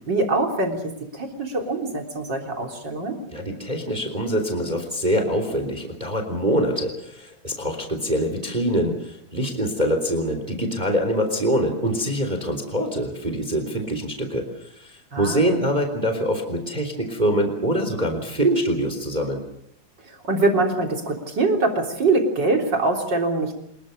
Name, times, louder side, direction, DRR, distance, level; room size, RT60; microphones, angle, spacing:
voice 1, 0.1-3.2 15.1-15.6 20.2-23.6, right 2 dB, 35° right, 3 dB, 4.0 m, -23 dB
voice 2, 3.3-14.4 14.8-19.4, equal, 15° right, 6 dB, 3.3 m, -24 dB
26.5 x 21.5 x 6.7 m, 0.77 s
omnidirectional pair, 3.7 m